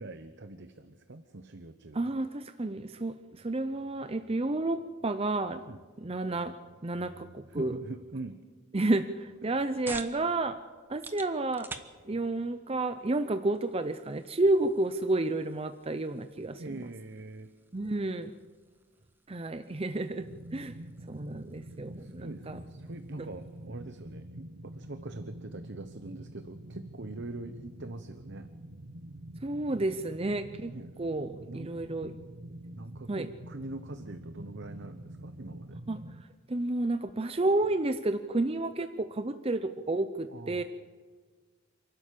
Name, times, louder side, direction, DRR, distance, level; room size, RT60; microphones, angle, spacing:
voice 1, 0.0-2.1 5.6-5.8 7.5-8.4 16.6-17.5 22.0-28.5 30.7-30.9 31.5-31.7 32.7-35.8 40.3-40.6, right 2 dB, 55° right, 9 dB, 1.0 m, -43 dB
voice 2, 1.9-5.6 6.0-6.5 6.8-7.8 8.7-10.6 10.9-11.7 12.1-16.6 17.7-18.3 19.3-20.3 20.5-20.7 21.1-22.6 23.2-23.3 29.4-30.7 31.0-32.1 33.1-33.3 35.9-36.0 36.5-40.6, right 2 dB, 25° right, 10 dB, 0.6 m, -31 dB
sound 1, 9.2-24.3, right 2 dB, 10° right, 1.0 m, -51 dB
sound 2, 20.2-36.2, right 1 dB, 75° right, 1.3 m, -46 dB
27.5 x 12.5 x 8.6 m, 1.5 s
head